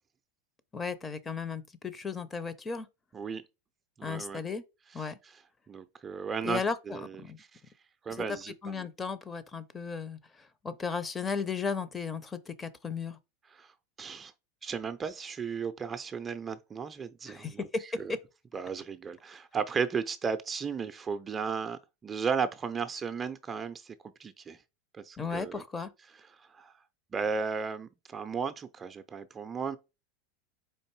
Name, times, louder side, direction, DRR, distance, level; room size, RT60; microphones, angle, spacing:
voice 1, 0.7-2.9 4.0-4.6 4.9-5.2 6.4-7.4 8.2-8.3 8.6-10.2 10.6-13.2 17.3-18.2 25.2-25.9, left 5 dB, 20° left, 0.6 m, -35 dB
voice 2, 4.0-4.4 4.9-5.4 5.7-7.6 8.0-8.9 13.5-13.7 14.0-14.3 14.6-17.7 18.0-18.1 18.5-24.6 24.9-25.6 26.4-26.7 27.1-29.8, right 6 dB, 25° right, 0.5 m, -35 dB
4.5 x 2.6 x 4.5 m
hypercardioid pair, 95°, 0 cm